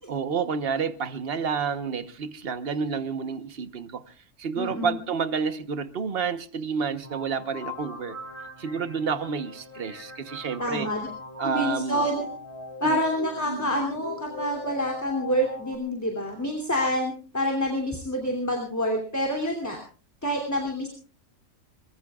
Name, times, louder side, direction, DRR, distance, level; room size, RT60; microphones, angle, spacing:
voice 1, 0.1-8.2 8.6-10.9 11.4-12.0 12.8-13.0, right 6 dB, 50° right, 1.3 m, -29 dB
voice 2, 4.6-5.0 10.6-11.1 11.4-12.3 12.8-19.8 20.2-20.9, equal, 10° left, 2.9 m, -27 dB
sound 1, 7.0-15.7, left 1 dB, 25° right, 2.9 m, -39 dB
24.0 x 21.5 x 2.4 m
omnidirectional pair, 1.4 m